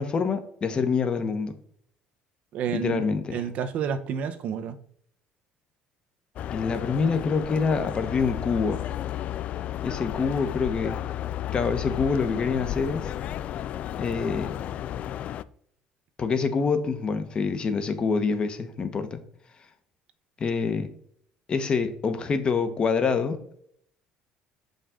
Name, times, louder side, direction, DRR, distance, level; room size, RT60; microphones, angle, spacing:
voice 1, 0.0-1.6 2.7-3.4 6.5-8.8 9.8-11.0 11.5-13.1 14.0-14.6 16.2-19.2 20.4-20.9 21.5-23.4, left 5 dB, 40° left, 1.1 m, -26 dB
voice 2, 2.5-3.0 3.3-4.8, right 8 dB, 60° right, 0.7 m, -30 dB
sound 1, 6.4-15.4, left 12 dB, 55° left, 0.3 m, -33 dB
6.5 x 5.3 x 3.7 m
supercardioid pair, 95°, 3 cm